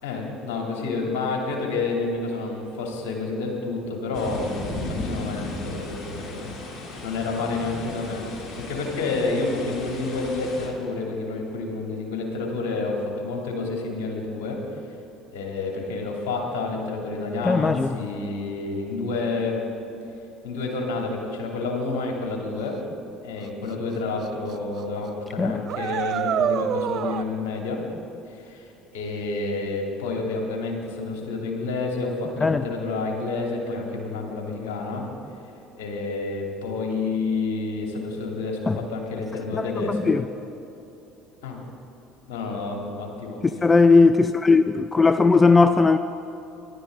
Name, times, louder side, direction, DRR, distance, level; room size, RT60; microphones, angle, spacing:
voice 1, 0.0-6.6 7.0-8.2 8.6-14.6 15.3-19.6 20.4-22.8 23.2-27.8 28.3-35.1 35.7-40.1 41.4-41.6 42.3-43.4, left 3 dB, 70° left, 0 dB, 2.9 m, -29 dB
sound 1, 4.1-10.7, left 2 dB, 45° left, 2.9 m, -35 dB
voice 2, 17.4-17.9 25.4-25.6 32.4-32.6 38.7-38.8 39.5-39.6 39.9-40.2 43.6-46.0, left 4 dB, 20° left, 10 dB, 0.5 m, -18 dB
sound 2, 23.7-23.8 24.2-24.5 24.8-24.9 25.6-27.2, right 9 dB, 50° right, 0.5 m, -26 dB
23.5 x 12.0 x 3.9 m, 2.9 s
hypercardioid pair, 60°, 0 cm